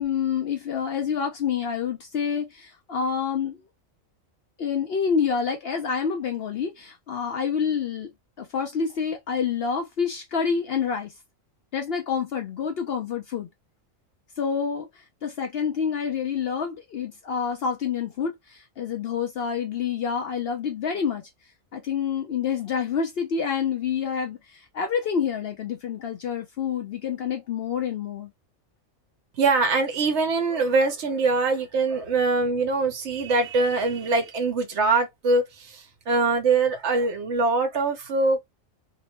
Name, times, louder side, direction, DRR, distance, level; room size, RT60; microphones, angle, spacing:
voice 1, 0.0-3.6 4.6-8.1 8.4-11.1 11.7-13.5 14.4-21.2 21.7-28.3, left 6 dB, 60° left, 0.7 m, -28 dB
voice 2, 29.3-38.4, right 3 dB, 65° right, 1.0 m, -23 dB
2.8 x 2.1 x 2.9 m
omnidirectional pair, 1.4 m